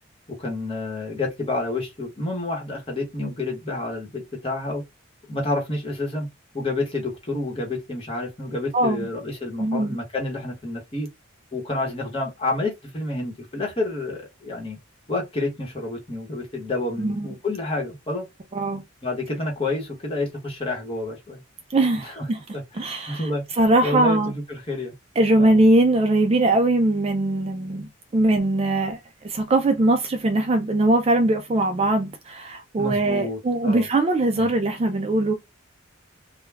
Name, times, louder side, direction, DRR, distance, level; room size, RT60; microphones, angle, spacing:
voice 1, 0.3-4.8 5.3-6.3 6.5-11.1 11.5-14.8 15.1-18.2 19.0-21.4 22.0-22.3 22.5-24.9 25.4-25.6 32.8-33.9 34.4-34.5, left 2 dB, 25° left, 1.0 m, -29 dB
voice 2, 8.7-9.1 9.6-10.0 17.0-17.3 18.6-18.8 21.7-22.4 22.7-23.3 23.6-24.3 25.2-27.9 28.1-29.0 29.2-35.3, right 2 dB, 30° right, 0.3 m, -21 dB
2.3 x 2.2 x 3.2 m
head